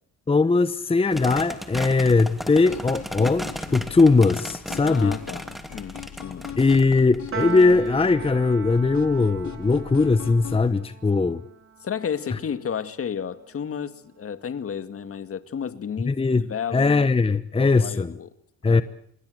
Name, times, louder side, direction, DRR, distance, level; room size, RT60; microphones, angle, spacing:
voice 1, 0.3-5.2 6.6-11.4 16.0-18.1 18.6-18.8, left 3 dB, 20° left, 1.0 m, -20 dB
sound 1, 1.1-8.1, equal, ahead, 2.9 m, -35 dB
sound 2, 2.7-10.7, left 9 dB, 70° left, 3.1 m, -40 dB
voice 2, 4.8-5.4 5.7-6.6 11.8-17.1 17.6-18.3 18.6-18.8, left 7 dB, 50° left, 1.9 m, -32 dB
Piano, 7.3-13.8, right 7 dB, 45° right, 3.8 m, -39 dB
26.5 x 23.0 x 7.9 m
cardioid pair, 90°, 30 cm